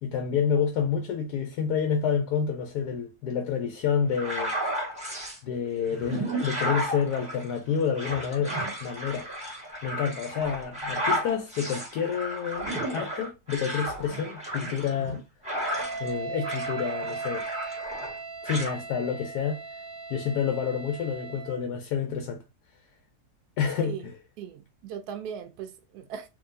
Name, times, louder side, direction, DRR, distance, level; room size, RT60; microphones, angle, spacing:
voice 1, 0.0-4.5 5.4-9.3 9.8-12.7 12.9-15.2 16.0-17.5 18.4-19.6 20.1-22.4 23.6-24.2, left 7 dB, 75° left, 1.1 m, -29 dB
sound 1, 4.1-5.4 5.9-16.1 16.4-18.2 18.5-18.7, equal, 5° right, 1.0 m, -33 dB
Wind instrument woodwind instrument, 15.5-21.6, right 4 dB, 35° left, 1.0 m, -37 dB
voice 2, 24.4-26.3, right 8 dB, 75° right, 1.0 m, -38 dB
3.7 x 2.6 x 2.5 m
omnidirectional pair, 1.8 m